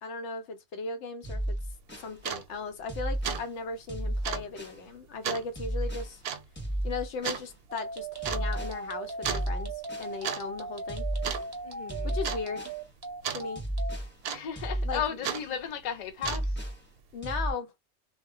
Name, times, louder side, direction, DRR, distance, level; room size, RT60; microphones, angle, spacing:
voice 1, 0.0-1.4 2.0-6.2 6.8-11.1 12.0-12.7 13.3-13.6 14.8-15.0 17.1-17.7, left 4 dB, 85° left, 0.9 m, -37 dB
sound 1, 1.2-2.1 2.9-3.5 3.9-4.8 5.5-6.1 6.5-7.5 8.2-8.8 9.2-10.1 10.9-11.5 11.9-12.8 13.5-14.1 14.5-15.5 16.2-16.8 17.2-17.5, right 1 dB, 10° left, 0.7 m, -33 dB
sound 2, 1.8-1.9 2.2-2.5 2.8-3.0 3.2-3.5 3.7-3.8 4.2-4.5 5.2-5.5 6.2-6.5 7.2-7.4 8.2-8.5 9.2-9.5 10.0-10.4 10.7-10.9 11.2-11.7 12.2-12.4 13.2-13.5 14.2-14.7 15.2-15.4 16.1-16.6, right 8 dB, 70° right, 0.7 m, -33 dB
sound 3, 7.7-14.0, right 3 dB, 30° right, 0.6 m, -39 dB
voice 2, 11.6-12.2 14.2-16.6, left 8 dB, 50° left, 0.7 m, -35 dB
2.1 x 2.1 x 3.6 m
omnidirectional pair, 1.1 m